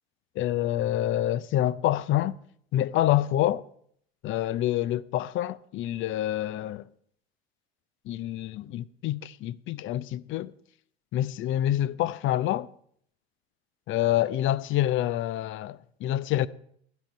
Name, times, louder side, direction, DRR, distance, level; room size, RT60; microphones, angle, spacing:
voice 1, 0.4-2.4 2.7-3.6 4.2-6.8 8.1-10.5 11.1-12.7 13.9-16.5, left 13 dB, 40° left, 0.5 m, -27 dB
13.0 x 10.5 x 4.4 m
hypercardioid pair, 80°, 32 cm